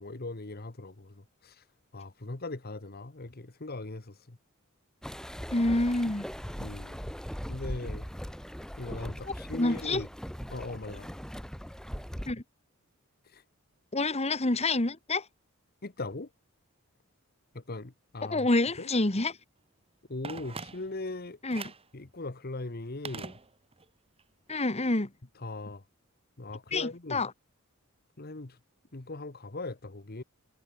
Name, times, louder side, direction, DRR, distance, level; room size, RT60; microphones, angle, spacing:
voice 1, 0.0-1.6 1.9-4.4 6.6-7.0 7.5-8.1 8.8-10.1 10.5-11.1 13.2-13.4 15.8-16.3 17.5-18.5 18.8-18.9 20.1-21.4 21.9-23.4 25.3-25.8 26.4-27.2 28.2-28.6 28.9-30.2, left 2 dB, 45° left, 1.3 m, -39 dB
sound 1, 5.0-12.3, equal, 5° left, 3.1 m, -40 dB
voice 2, 5.5-6.3 9.5-10.0 12.3-12.4 13.9-15.2 18.3-19.3 21.4-21.6 24.5-25.1 26.7-27.3, left 2 dB, 30° left, 1.7 m, -27 dB
Telephone, 20.2-21.1 21.5-21.9 23.1-23.9 24.2-24.3, right 4 dB, 30° right, 2.1 m, -42 dB
head